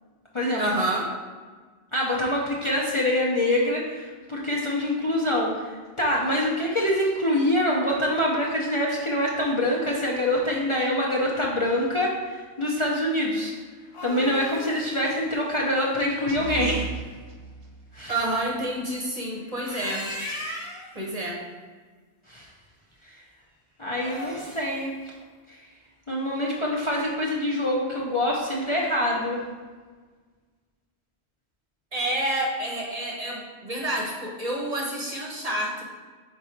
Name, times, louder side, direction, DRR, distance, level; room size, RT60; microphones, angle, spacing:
voice 1, 0.6-1.1 18.1-20.1 20.9-21.4 31.9-35.8, right 1 dB, 40° right, -2 dB, 0.9 m, -28 dB
voice 2, 1.9-13.5 14.0-16.9 17.9-18.1 22.3-22.5 23.8-24.9 25.5-25.6 26.1-29.4, left 1 dB, 35° left, -4 dB, 0.7 m, -25 dB
sound 1, 13.7-16.7 19.4-20.9 23.9-24.8, left 1 dB, 80° left, 1.6 m, -38 dB
sound 2, 16.3-18.2, right 5 dB, 65° right, 0.8 m, -36 dB
5.2 x 4.1 x 4.4 m, 1.5 s
omnidirectional pair, 1.1 m